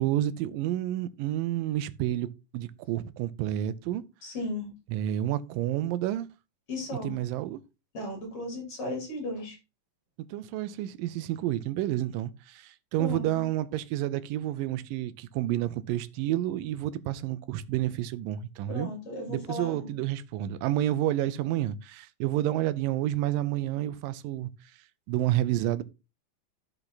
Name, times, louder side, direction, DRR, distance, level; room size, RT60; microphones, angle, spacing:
voice 1, 0.0-2.3 2.5-4.0 4.9-6.3 7.0-7.6 10.3-18.9 19.3-24.5 25.1-25.8, right 13 dB, 80° right, 2.3 m, -29 dB
voice 2, 4.2-4.7 6.7-7.2 7.9-9.6 13.0-13.4 18.7-19.9, left 2 dB, 40° left, 4.8 m, -35 dB
12.0 x 5.9 x 4.1 m
omnidirectional pair, 4.1 m